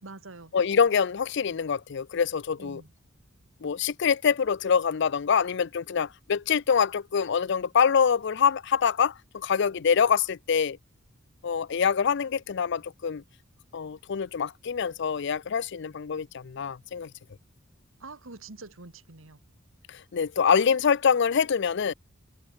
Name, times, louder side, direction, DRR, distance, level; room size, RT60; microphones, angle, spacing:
voice 1, 0.0-0.5 2.6-2.9 18.0-19.4, right 3 dB, 80° right, 2.1 m, -45 dB
voice 2, 0.5-2.8 3.6-10.8 11.4-13.2 13.7-17.1 19.9-21.9, left 6 dB, 60° left, 0.5 m, -25 dB
head